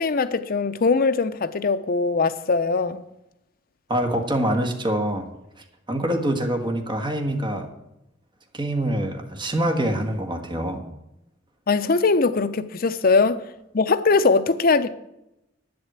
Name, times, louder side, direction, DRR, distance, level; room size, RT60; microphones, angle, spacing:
voice 1, 0.0-3.0 11.7-13.4 13.7-14.9, left 4 dB, 50° left, 0.6 m, -21 dB
voice 2, 3.9-5.3 5.9-7.7 8.5-10.8, right 1 dB, 25° right, 1.6 m, -25 dB
9.7 x 7.9 x 8.1 m
head